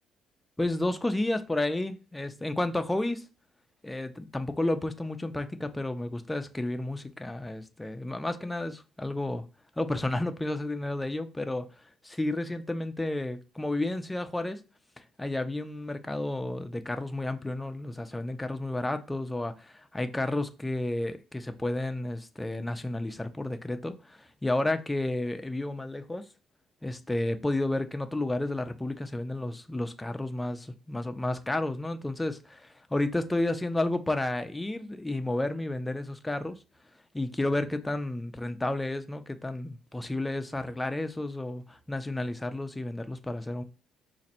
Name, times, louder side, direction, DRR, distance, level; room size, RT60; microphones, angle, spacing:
voice 1, 0.6-3.3 3.8-9.4 9.8-11.7 12.0-14.6 15.2-26.2 26.8-36.6 37.1-43.6, left 2 dB, 10° left, 0.4 m, -31 dB
5.0 x 2.5 x 4.2 m
cardioid pair, 165°, 0 cm